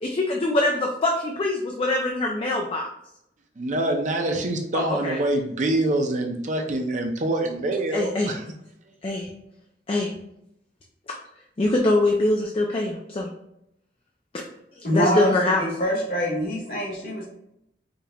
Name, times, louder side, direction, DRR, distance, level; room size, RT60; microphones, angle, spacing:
voice 1, 0.0-2.9 4.7-5.2 7.9-8.3 9.0-9.3 9.9-10.1 11.6-13.3 14.9-15.6, left 2 dB, 30° left, 0 dB, 0.4 m, -23 dB
voice 2, 3.6-8.4, right 1 dB, 45° right, 4 dB, 0.6 m, -25 dB
voice 3, 14.8-17.3, equal, 55° left, -2 dB, 1.5 m, -25 dB
5.1 x 2.9 x 2.3 m, 0.80 s
head